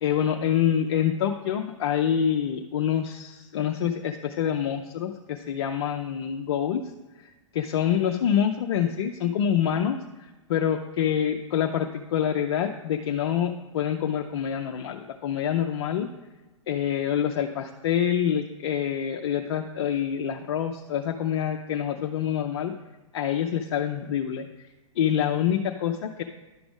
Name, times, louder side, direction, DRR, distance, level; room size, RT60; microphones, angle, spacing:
voice 1, 0.0-6.8 7.2-7.3 7.5-16.1 16.7-22.7 23.1-24.7 25.0-26.2, left 9 dB, 50° left, 4 dB, 0.5 m, -26 dB
11.0 x 5.9 x 3.5 m, 1.1 s
figure-of-eight pair, 110°, 17 cm